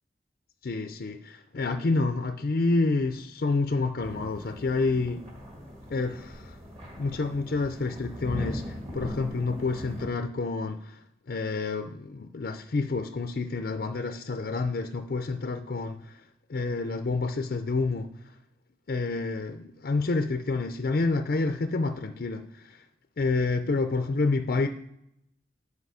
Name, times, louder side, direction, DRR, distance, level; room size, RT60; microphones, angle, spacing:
voice 1, 0.6-5.2 5.9-6.6 7.0-11.0 11.3-16.2 16.5-18.1 18.9-22.8 23.2-24.7, left 3 dB, 55° left, 0.5 m, -28 dB
sound 1, 4.0-10.1, equal, 30° right, 1.7 m, -40 dB
10.5 x 4.8 x 4.9 m
head